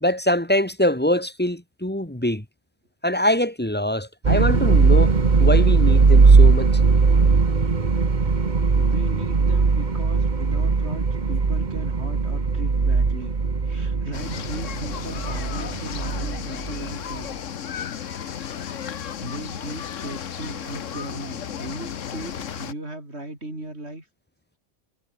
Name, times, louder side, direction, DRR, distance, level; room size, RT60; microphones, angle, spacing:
voice 1, 0.0-2.4 3.0-5.1 5.4-6.7 7.1-7.2, left 1 dB, 10° left, 2.3 m, -23 dB
sound 1, 4.2-17.1, right 4 dB, 40° right, 1.5 m, -19 dB
voice 2, 8.7-13.4 13.6-17.6 19.2-24.1, right 1 dB, 60° right, 7.7 m, -37 dB
sound 2, 14.1-22.7, left 8 dB, 80° left, 1.4 m, -34 dB
omnidirectional pair, 1.3 m